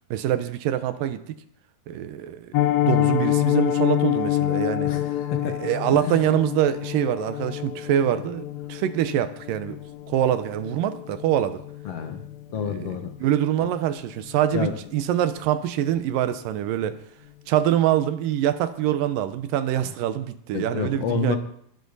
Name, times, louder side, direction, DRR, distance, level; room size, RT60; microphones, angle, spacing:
voice 1, 0.1-1.4 1.9-2.5 2.8-4.9 5.4-9.8 10.1-11.6 12.6-17.0 17.5-21.4, right 11 dB, 80° right, 11 dB, 2.4 m, -24 dB
Piano, 2.5-13.4 13.7-13.9 14.2-14.4 14.8-15.0 15.3-15.4, left 14 dB, 80° left, 2.5 m, -27 dB
voice 2, 4.9-5.6 5.9-6.2 11.9-12.2 12.5-13.1 14.5-14.7 20.5-21.4, left 6 dB, 60° left, 6 dB, 1.9 m, -28 dB
20.5 x 8.9 x 4.0 m, 0.66 s
omnidirectional pair, 4.0 m